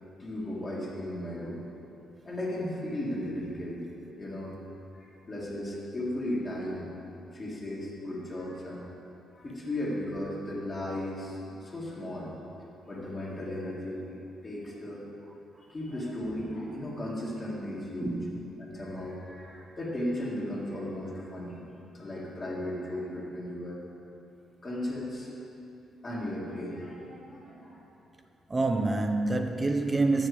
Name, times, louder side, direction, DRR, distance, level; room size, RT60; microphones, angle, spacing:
voice 1, 0.2-1.7 2.3-3.9 4.2-4.6 4.9-6.9 7.3-9.0 9.3-12.3 12.9-14.1 14.4-15.1 15.6-18.2 18.6-21.6 21.9-23.8 24.6-25.3 26.0-27.8, left 1 dB, 35° left, -5 dB, 2.2 m, -36 dB
voice 2, 18.0-18.8 28.5-30.3, right 2 dB, 25° right, 5 dB, 0.6 m, -27 dB
7.4 x 6.5 x 6.8 m, 2.8 s
cardioid pair, 90°, 0 cm